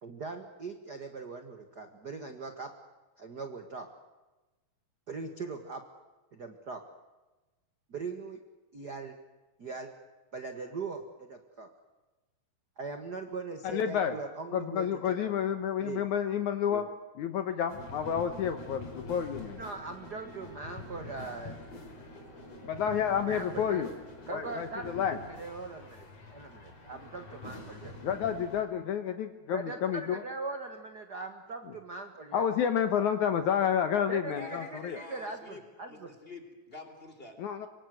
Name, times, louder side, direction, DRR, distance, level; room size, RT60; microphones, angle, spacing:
voice 1, 0.0-2.7 3.2-3.9 5.1-5.8 6.3-6.8 7.9-8.4 8.7-9.1 9.6-9.9 10.3-11.7 12.8-15.3 15.8-16.0 16.7-16.9 19.6-21.7 21.9-22.8 23.2-23.8 24.3-28.1 29.5-32.7 34.1-36.1, right 3 dB, 40° right, 6 dB, 1.5 m, -41 dB
voice 2, 13.6-14.2 14.5-16.9 17.2-19.6 22.6-23.9 24.3-25.2 28.0-30.2 32.3-35.0 37.4-37.7, left 8 dB, 65° left, 8 dB, 2.3 m, -30 dB
sound 1, 17.7-28.6, left 2 dB, 45° left, 5.0 m, -46 dB
voice 3, 34.3-35.6 35.9-37.4, left 3 dB, 15° left, 6 dB, 3.9 m, -47 dB
25.0 x 25.0 x 7.9 m, 1.1 s
omnidirectional pair, 4.1 m